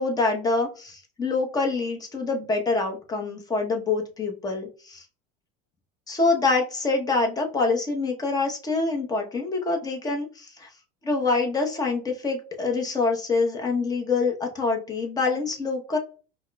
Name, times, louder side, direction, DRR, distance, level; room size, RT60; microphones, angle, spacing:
voice 1, 0.0-5.0 6.1-10.7 11.0-16.0, left 3 dB, 20° left, 2 dB, 0.8 m, -25 dB
5.4 x 2.1 x 2.2 m, 0.36 s
supercardioid pair, 120°, 19 cm